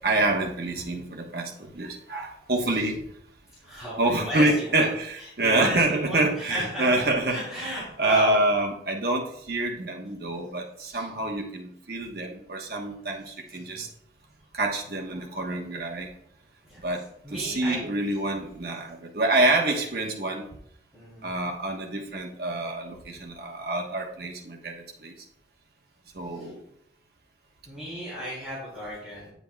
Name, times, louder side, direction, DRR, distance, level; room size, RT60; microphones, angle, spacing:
voice 1, 0.0-3.0 4.0-7.7 8.0-13.9 14.5-16.1 16.8-17.0 17.3-20.4 21.2-25.1 26.1-26.6, right 2 dB, 55° right, 0 dB, 1.2 m, -27 dB
voice 2, 3.6-4.8 5.4-7.0 7.3-8.3 10.9-11.0 13.6-13.8 16.7-16.8 17.2-17.8 20.9-21.3 26.3-26.4 27.7-29.3, equal, ahead, -10 dB, 2.9 m, -34 dB
9.1 x 7.8 x 2.3 m, 0.72 s
head